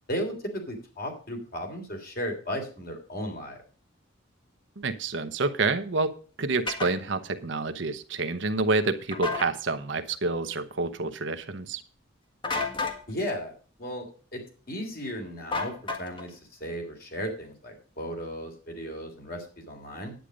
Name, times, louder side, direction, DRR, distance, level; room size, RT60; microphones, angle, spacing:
voice 1, 0.1-3.6 13.1-14.4 14.7-20.1, equal, 45° left, 3 dB, 3.3 m, -35 dB
voice 2, 4.8-11.8, right 3 dB, 60° right, 10 dB, 0.9 m, -28 dB
sound 1, 6.7-6.9 9.1-9.5 12.4-13.0 15.5-16.3, left 3 dB, 25° left, 1.5 m, -30 dB
10.5 x 9.1 x 5.0 m, 0.39 s
head